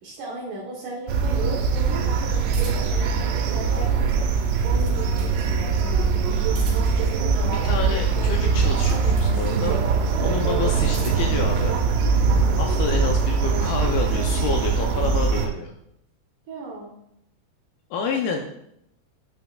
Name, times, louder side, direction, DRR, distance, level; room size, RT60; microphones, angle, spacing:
voice 1, 0.0-6.5 7.0-7.6 16.5-16.9, right 2 dB, 70° right, -2 dB, 2.1 m, -37 dB
sound 1, 1.1-15.5, right 5 dB, 90° right, 2.8 m, -22 dB
sound 2, 2.5-3.0 4.3-5.4 6.4-7.1 8.5-9.4 10.6-11.4, right 3 dB, 55° right, 2.6 m, -43 dB
voice 2, 7.5-9.8 10.2-11.7 12.5-15.7 17.9-18.4, left 5 dB, 80° left, 2 dB, 2.3 m, -29 dB
9.2 x 5.7 x 2.3 m, 0.77 s
omnidirectional pair, 4.9 m